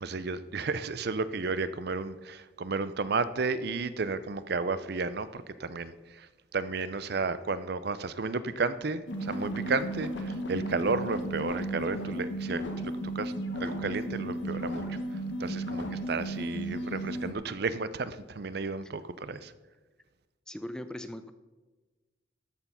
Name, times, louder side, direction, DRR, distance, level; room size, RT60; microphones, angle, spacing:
voice 1, 0.0-13.3 13.6-15.0 15.4-19.5, right 4 dB, 55° right, 14 dB, 0.5 m, -33 dB
sound 1, 9.1-17.3, right 1 dB, 65° left, 1.3 m, -34 dB
voice 2, 20.5-21.3, left 1 dB, 5° left, 10 dB, 0.3 m, -39 dB
13.0 x 6.7 x 5.6 m, 1.2 s
head